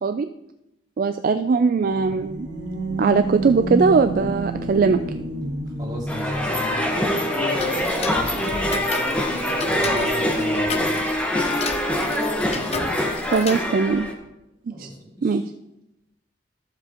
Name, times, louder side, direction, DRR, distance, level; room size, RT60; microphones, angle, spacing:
voice 1, 1.0-2.5 3.0-5.0 13.3-14.1 14.7-14.9 15.2-15.4, right 4 dB, 50° right, 9 dB, 0.3 m, -20 dB
sound 1, 1.8-6.7, right 1 dB, 90° right, 1.4 m, -29 dB
voice 2, 5.8-10.9 12.5-12.9 14.7-15.4, equal, 25° right, -5 dB, 3.1 m, -33 dB
sound 2, 6.1-14.1, left 1 dB, 5° left, 1.2 m, -24 dB
Tick-tock, 7.6-13.6, left 5 dB, 35° left, 0.6 m, -34 dB
13.5 x 7.5 x 2.9 m, 0.91 s
head